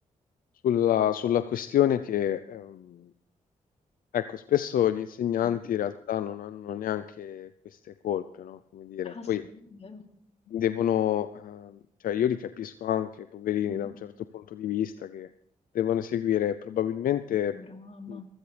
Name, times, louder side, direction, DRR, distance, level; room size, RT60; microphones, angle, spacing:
voice 1, 0.6-3.1 4.1-7.5 7.8-9.4 10.5-13.9 14.3-15.3 15.7-17.5 18.1-18.2, left 11 dB, 80° left, 12 dB, 0.5 m, -28 dB
voice 2, 9.0-10.0 13.7-13.9 17.3-18.3, left 4 dB, 45° left, 3 dB, 3.1 m, -45 dB
23.5 x 15.0 x 3.4 m, 0.72 s
cardioid pair, 60°, 14 cm